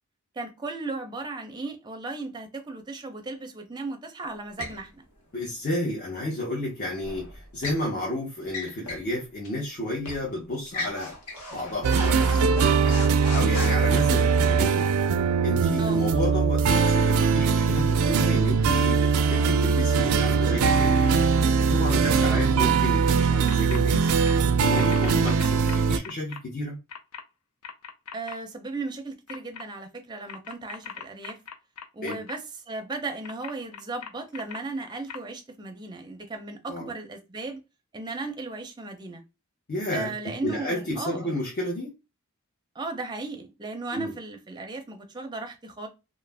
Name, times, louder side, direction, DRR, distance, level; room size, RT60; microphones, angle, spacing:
voice 1, 0.4-5.0 15.8-16.0 22.0-22.4 25.2-25.4 28.1-31.4 31.9-37.6 37.9-39.2 39.9-41.3 42.7-45.9, right 3 dB, 20° right, 0.5 m, -36 dB
sound 1, 4.6-4.8 7.0-7.8 8.4-9.1 9.4-9.6 10.0-10.3 10.7-14.0, left 2 dB, 90° left, 1.0 m, -36 dB
voice 2, 5.3-11.1 11.5-12.7 13.1-14.9 15.4-21.1 21.6-24.1 24.6-26.8 32.0-32.2 36.7-36.9 39.7-41.9 43.9-44.1, left 1 dB, 45° left, 0.8 m, -32 dB
sound 2, 11.8-26.0, right 5 dB, 85° right, 0.4 m, -21 dB
sound 3, 23.5-23.8 24.1-24.3 24.8-26.4 26.9-27.2 27.6-28.3 29.3-29.6 30.3-32.4 33.2-34.6 35.1-35.2, left 6 dB, 75° left, 0.5 m, -39 dB
2.4 x 2.0 x 3.3 m
head